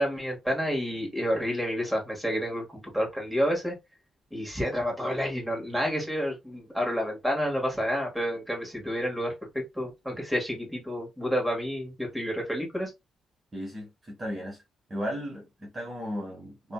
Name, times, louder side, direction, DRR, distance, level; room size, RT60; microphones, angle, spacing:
voice 1, 0.0-3.7 4.3-12.9, equal, ahead, 1.6 m, -29 dB
voice 2, 13.5-14.6 14.9-16.7, equal, 30° right, 1.0 m, -35 dB
2.7 x 2.6 x 2.2 m
cardioid pair, 90°, 0 cm